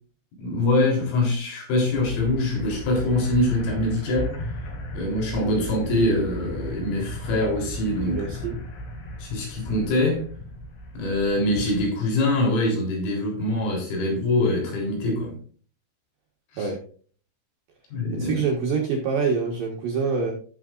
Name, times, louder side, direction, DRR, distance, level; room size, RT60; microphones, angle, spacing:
voice 1, 0.4-4.4 4.9-8.2 9.2-10.2 10.9-15.3 16.5-16.7 17.9-18.4, left 2 dB, 75° left, 6.3 m, -24 dB
sound 1, 1.9-11.9, equal, 55° left, 3.9 m, -36 dB
voice 2, 8.1-8.5 16.6-16.8 18.1-20.3, right 5 dB, 65° right, 2.4 m, -25 dB
15.5 x 7.2 x 2.5 m
omnidirectional pair, 5.9 m